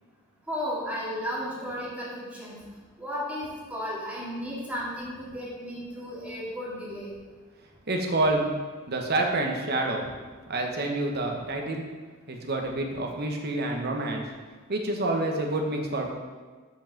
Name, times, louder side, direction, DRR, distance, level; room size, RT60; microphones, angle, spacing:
voice 1, 0.5-2.6 3.0-7.1, equal, 5° right, -7 dB, 2.3 m, -34 dB
voice 2, 7.9-8.6 8.9-10.0 10.5-11.8 12.3-14.2 14.7-16.1, right 2 dB, 50° right, 2 dB, 1.1 m, -28 dB
7.2 x 5.3 x 5.8 m, 1.4 s
head